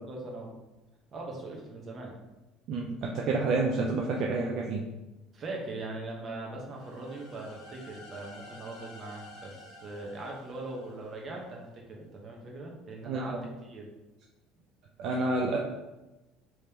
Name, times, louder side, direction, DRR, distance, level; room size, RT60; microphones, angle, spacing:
voice 1, 0.1-0.5 1.1-2.1 3.4-3.7 5.3-13.9, right 2 dB, 40° right, -1 dB, 0.9 m, -41 dB
voice 2, 2.7-4.8 13.1-13.4 15.0-15.6, right 3 dB, 60° right, -1 dB, 0.4 m, -29 dB
sound 1, 6.7-11.5, left 1 dB, 80° left, 0.7 m, -51 dB
3.4 x 3.1 x 2.8 m, 1.0 s
supercardioid pair, 105°, 0 cm